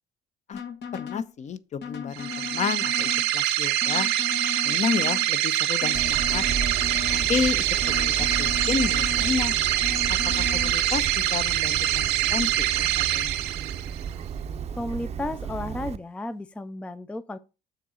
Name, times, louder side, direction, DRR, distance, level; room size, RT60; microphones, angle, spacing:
sound 1, 0.5-1.3 1.8-3.3 3.8-5.3 5.8-7.3 7.8-9.3 9.8-10.7, left 8 dB, 75° left, 1.6 m, -36 dB
voice 1, 0.9-4.1 4.6-6.4 7.1-9.6 10.4-13.4, left 6 dB, 45° left, 0.7 m, -31 dB
sound 2, 2.1-14.1, right 13 dB, 90° right, 0.6 m, -25 dB
Bird vocalization bird call bird song, 5.9-16.0, right 7 dB, 40° right, 0.6 m, -33 dB
voice 2, 14.7-17.4, left 2 dB, 5° left, 0.4 m, -33 dB
6.8 x 3.9 x 6.2 m
cardioid pair, 110°, 17 cm